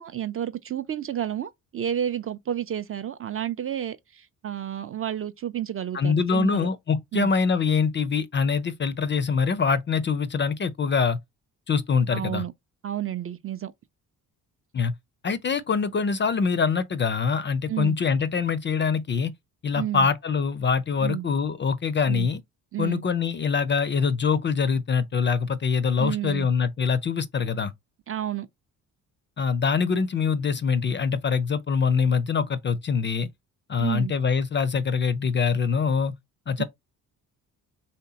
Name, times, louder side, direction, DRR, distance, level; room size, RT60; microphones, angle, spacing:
voice 1, 0.0-6.7 7.1-7.3 12.1-12.5 12.8-13.7 17.7-18.0 19.7-20.1 21.0-21.3 22.1-22.3 22.7-23.0 26.0-26.5 28.1-28.5 33.8-34.1 36.6-36.7, right 11 dB, 35° right, 0.4 m, -30 dB
voice 2, 5.9-11.2 11.7-12.4 14.7-14.9 15.2-19.3 19.6-22.4 22.8-27.7 29.4-33.3 33.7-36.1 36.5-36.6, left 5 dB, 30° left, 0.4 m, -24 dB
3.2 x 2.8 x 2.7 m
hypercardioid pair, 50°, 42 cm